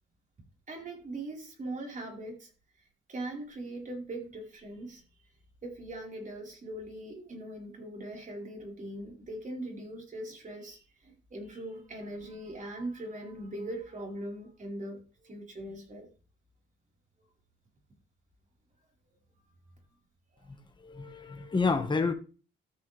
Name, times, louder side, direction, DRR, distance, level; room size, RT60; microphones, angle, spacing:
voice 1, 0.7-2.5 3.1-5.4 5.6-16.1 20.4-20.5, right 1 dB, 40° right, 4.6 m, -41 dB
voice 2, 20.5-22.1, left 4 dB, 25° left, 1.5 m, -30 dB
13.5 x 6.6 x 3.4 m
cardioid pair, 90°, 20 cm